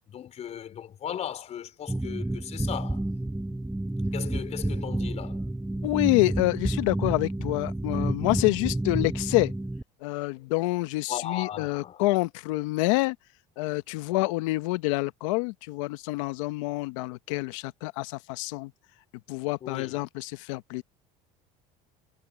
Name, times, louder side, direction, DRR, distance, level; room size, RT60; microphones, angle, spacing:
voice 1, 0.1-3.0 4.1-5.5 11.1-12.0 19.6-20.0, left 10 dB, 45° left, 4.9 m, -37 dB
sound 1, 1.9-9.8, right 1 dB, 5° right, 6.6 m, -30 dB
voice 2, 5.8-9.5 10.0-13.2 13.6-18.7 19.3-20.8, left 21 dB, 85° left, 1.0 m, -27 dB
supercardioid pair, 105°, 16 cm